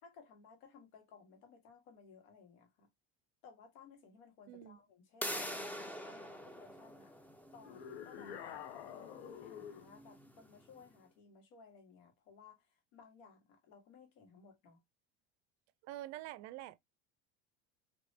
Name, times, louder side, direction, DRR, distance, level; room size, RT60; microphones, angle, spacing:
voice 1, 0.0-2.9 3.4-5.4 5.8-7.1 7.5-8.4 8.8-12.6 12.9-14.8, left 5 dB, 70° left, 1.6 m, -59 dB
voice 2, 4.5-4.8 15.8-16.8, right 15 dB, 60° right, 0.4 m, -46 dB
sound 1, 5.2-10.8, equal, 5° left, 0.6 m, -46 dB
sound 2, 7.6-9.9, left 8 dB, 90° left, 0.8 m, -48 dB
3.2 x 2.9 x 2.6 m
supercardioid pair, 105°, 31 cm